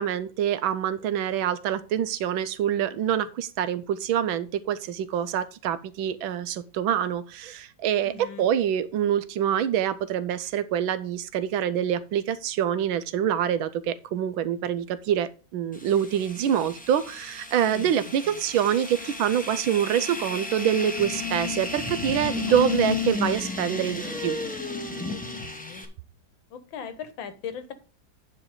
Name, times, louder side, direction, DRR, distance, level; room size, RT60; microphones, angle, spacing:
voice 1, 0.0-24.4, right 9 dB, 90° right, 1.5 m, -26 dB
voice 2, 8.0-8.5 17.7-17.9 18.3-18.4 22.3-22.7 25.1-25.9 26.5-27.7, left 7 dB, 80° left, 1.8 m, -39 dB
sound 1, 15.7-25.8, left 4 dB, 5° left, 0.9 m, -33 dB
9.6 x 5.1 x 4.9 m
omnidirectional pair, 2.1 m